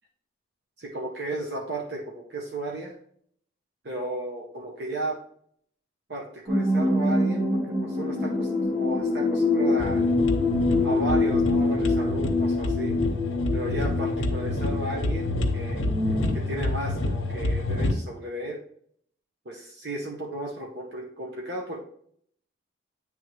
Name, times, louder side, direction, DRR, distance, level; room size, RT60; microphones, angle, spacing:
voice 1, 0.8-3.0 3.8-5.2 6.1-10.1 10.8-12.9 13.5-15.8 16.1-18.6 19.4-21.8, right 1 dB, 55° right, -1 dB, 0.9 m, -34 dB
sound 1, 6.5-16.3, left 2 dB, 30° right, 1.9 m, -25 dB
sound 2, 9.8-17.9, left 2 dB, 80° left, 0.8 m, -28 dB
9.2 x 3.5 x 3.1 m, 0.64 s
head